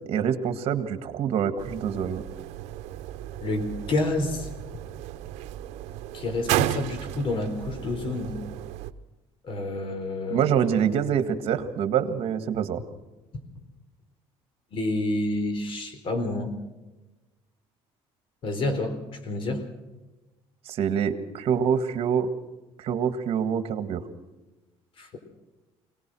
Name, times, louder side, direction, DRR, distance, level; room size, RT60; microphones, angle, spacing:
voice 1, 0.1-2.2 10.3-12.8 20.7-22.3 22.8-24.0, right 8 dB, 60° right, 9 dB, 1.9 m, -25 dB
sound 1, 1.6-8.9, right 13 dB, 80° right, 0.9 m, -33 dB
voice 2, 3.4-4.5 6.1-8.4 9.4-10.6 14.7-16.6 18.4-19.0 19.2-19.7 25.0-25.2, left 2 dB, 50° left, 8 dB, 4.2 m, -29 dB
23.0 x 19.0 x 6.3 m, 1.1 s
cardioid pair, 120°, 11 cm